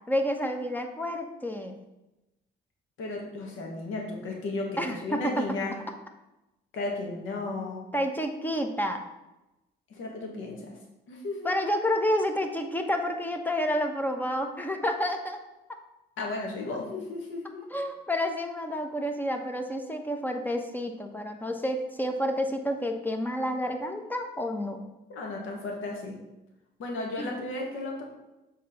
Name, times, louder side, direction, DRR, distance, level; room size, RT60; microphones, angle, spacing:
voice 1, 0.1-1.8 4.8-5.4 7.9-9.0 11.4-15.4 17.7-24.8 27.2-27.3, equal, 10° left, 5 dB, 1.0 m, -29 dB
voice 2, 3.0-5.7 6.7-7.8 9.9-10.7 11.1-11.5 16.2-17.6 25.1-26.2 26.8-28.0, left 2 dB, 80° left, 0 dB, 1.7 m, -34 dB
6.6 x 3.8 x 5.7 m, 0.97 s
cardioid pair, 90°, 20 cm